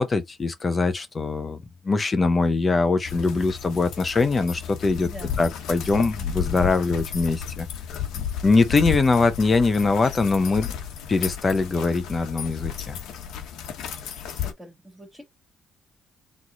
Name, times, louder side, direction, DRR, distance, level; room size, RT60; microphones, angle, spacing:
voice 1, 0.0-1.6 1.8-5.1 5.4-7.7 8.4-10.7 11.1-13.0, left 3 dB, 30° left, 0.8 m, -22 dB
sound 1, 3.0-14.5, left 8 dB, 90° left, 1.0 m, -33 dB
voice 2, 5.0-5.3 14.3-15.2, equal, 5° right, 2.5 m, -43 dB
3.7 x 3.2 x 3.9 m
cardioid pair, 90°, 0 cm